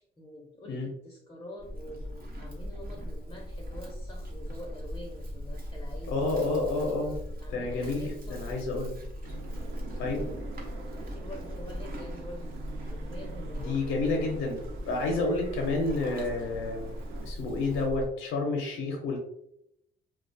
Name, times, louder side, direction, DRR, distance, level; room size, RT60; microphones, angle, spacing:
voice 1, 0.0-6.1 7.4-8.6 10.9-12.6 12.9-14.0, equal, 20° left, -1 dB, 0.5 m, -46 dB
Livestock farm animals working animals, 1.6-18.1, equal, 45° right, 0.8 m, -39 dB
voice 2, 6.1-7.1 7.5-8.9 10.0-10.2 13.6-14.6 14.9-16.9 17.2-19.2, left 3 dB, 85° left, 1 dB, 0.5 m, -29 dB
sound 1, 9.2-17.3, right 5 dB, 85° right, 0.4 m, -46 dB
2.3 x 2.1 x 2.5 m, 0.76 s
cardioid pair, 90°, 20 cm